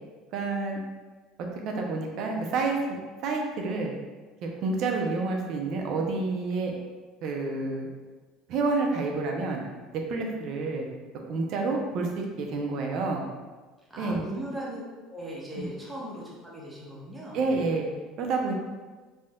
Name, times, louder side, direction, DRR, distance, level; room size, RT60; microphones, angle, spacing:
voice 1, 0.3-0.8 1.6-2.8 3.2-3.9 4.4-6.7 7.2-7.9 8.5-9.6 9.9-10.8 11.3-13.2 14.0-14.2 15.6-15.7 17.3-17.9 18.2-18.5, right 3 dB, 55° right, 1 dB, 0.5 m, -29 dB
voice 2, 13.9-14.8 15.1-17.4, equal, 10° right, -6 dB, 0.8 m, -38 dB
3.4 x 2.6 x 2.2 m, 1.3 s
cardioid pair, 125°, 0 cm